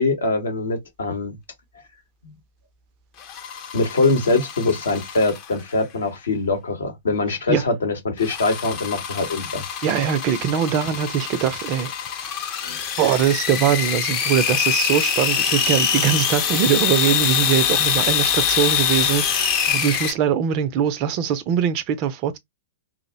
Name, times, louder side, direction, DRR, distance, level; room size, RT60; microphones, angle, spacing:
voice 1, 0.0-1.3 3.7-9.6 12.6-12.8, left 3 dB, 65° left, 0.8 m, -23 dB
sound 1, 3.2-5.7 8.2-20.1, left 8 dB, 35° left, 0.5 m, -24 dB
voice 2, 9.8-11.9 13.0-22.4, right 9 dB, 35° right, 0.3 m, -22 dB
2.4 x 2.0 x 2.5 m
figure-of-eight pair, 105°, 0 cm